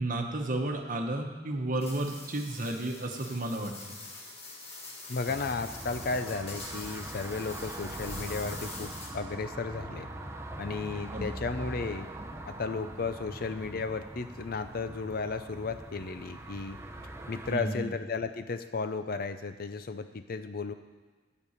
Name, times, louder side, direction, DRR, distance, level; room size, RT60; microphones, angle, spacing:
voice 1, 0.0-3.7 11.1-11.3 17.5-17.8, right 1 dB, 45° right, 3 dB, 1.2 m, -32 dB
sound 1, 1.8-9.4, left 3 dB, 35° left, 1.7 m, -45 dB
voice 2, 5.1-10.1 10.6-12.1 12.5-16.8 17.3-20.7, left 4 dB, 55° left, 10 dB, 0.6 m, -34 dB
sound 2, 5.3-17.5, right 1 dB, 15° right, 0.7 m, -42 dB
12.0 x 5.3 x 8.2 m, 1.4 s
head